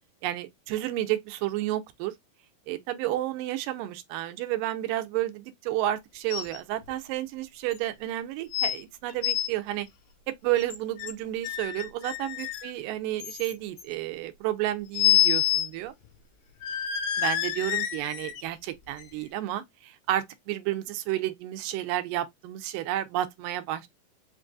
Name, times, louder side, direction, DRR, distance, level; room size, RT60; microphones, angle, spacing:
voice 1, 0.2-2.1 2.7-9.9 10.4-15.9 17.2-23.9, right 14 dB, 85° right, 2.2 m, -31 dB
sound 1, 6.3-6.6 6.9-7.0 7.7-7.8 8.5-8.8 9.1-9.5 10.6-11.1 11.4-12.7 13.2-13.8 14.9-15.7 16.0-16.1 16.6-18.4 19.0-19.1, left 12 dB, 80° left, 2.2 m, -27 dB
5.8 x 2.6 x 2.3 m
omnidirectional pair, 3.9 m